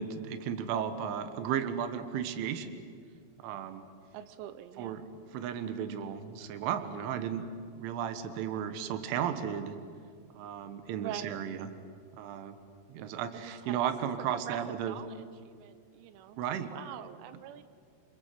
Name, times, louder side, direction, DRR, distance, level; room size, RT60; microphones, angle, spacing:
voice 1, 0.0-2.7 3.4-3.9 4.8-5.0 5.3-7.5 7.8-9.8 10.4-11.7 12.1-12.6 12.9-15.0 16.4-16.7, right 9 dB, 70° right, 9 dB, 3.7 m, -34 dB
voice 2, 4.1-5.0 11.0-11.4 13.3-13.8 14.2-17.6, right 11 dB, 90° right, 12 dB, 3.7 m, -44 dB
28.5 x 27.0 x 7.8 m, 2.2 s
omnidirectional pair, 6.0 m